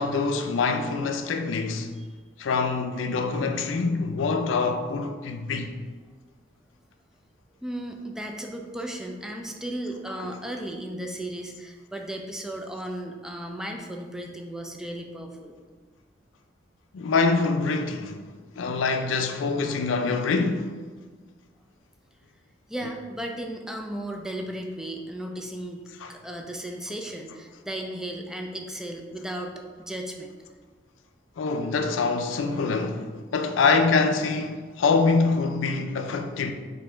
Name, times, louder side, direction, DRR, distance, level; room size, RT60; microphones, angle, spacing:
voice 1, 0.0-1.9 2.4-5.7 10.2-10.3 16.9-18.2 18.6-20.8 26.0-26.1 31.4-36.5, left 4 dB, 90° left, 0.4 m, -25 dB
voice 2, 7.6-15.5 22.7-30.3, right 1 dB, 5° right, 0.4 m, -35 dB
4.3 x 2.7 x 4.3 m
head